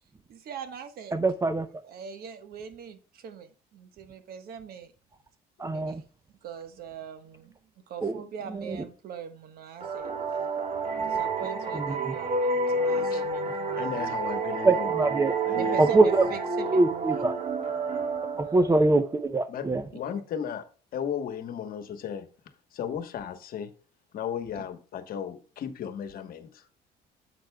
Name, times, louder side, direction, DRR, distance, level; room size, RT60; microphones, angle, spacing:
voice 1, 0.3-1.1 1.8-4.9 5.6-6.0 6.4-7.6 7.9-10.1 11.0-14.2 15.5-17.2 18.3-19.0 19.9-20.2, right 7 dB, 65° right, 1.2 m, -41 dB
voice 2, 1.1-1.7 5.6-6.0 8.0-8.1 8.5-8.8 11.7-12.1 14.6-15.3 15.8-16.3 16.7-17.3 18.4-19.8, right 2 dB, 20° right, 0.6 m, -23 dB
sound 1, 9.8-19.2, right 3 dB, 40° right, 1.5 m, -29 dB
voice 3, 13.8-15.0 15.4-15.8 19.5-20.6 20.9-22.3 22.7-23.7 24.1-26.7, left 8 dB, 60° left, 1.2 m, -35 dB
10.5 x 7.7 x 2.2 m
cardioid pair, 110°, 17 cm